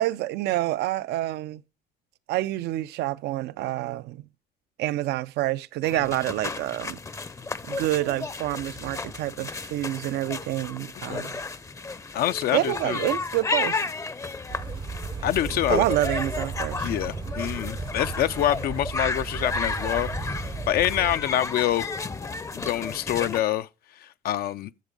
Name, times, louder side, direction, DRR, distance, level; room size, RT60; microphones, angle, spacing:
voice 1, 0.0-1.6 2.3-4.3 4.8-7.0 7.7-11.3 12.5-13.8 15.7-16.9, right 15 dB, 80° right, 0.5 m, -27 dB
sound 1, 5.8-23.4, left 4 dB, 20° left, 0.6 m, -33 dB
voice 2, 12.1-13.0 15.2-15.8 16.8-20.1 20.4-21.9 22.5-23.7 24.0-24.7, left 12 dB, 65° left, 0.4 m, -26 dB
sound 2, 14.5-21.2, right 6 dB, 25° right, 0.5 m, -35 dB
10.5 x 7.2 x 5.2 m
cardioid pair, 110°, 17 cm